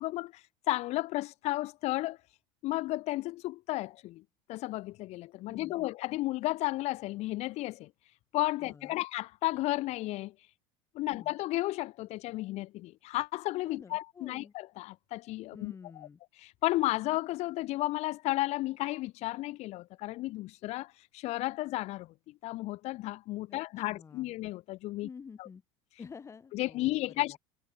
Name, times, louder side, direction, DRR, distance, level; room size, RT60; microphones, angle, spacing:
voice 1, 0.0-2.2 2.6-4.2 4.5-7.9 8.3-10.3 10.9-15.7 16.4-25.1 25.4-25.5 26.5-27.4, left 18 dB, 50° left, 2.4 m, -33 dB
voice 2, 5.5-5.9 8.6-9.0 11.1-11.3 13.6-14.5 15.5-16.2 23.5-24.3 25.0-25.6 26.0-27.4, left 6 dB, 20° left, 4.9 m, -50 dB
supercardioid pair, 140°, 14 cm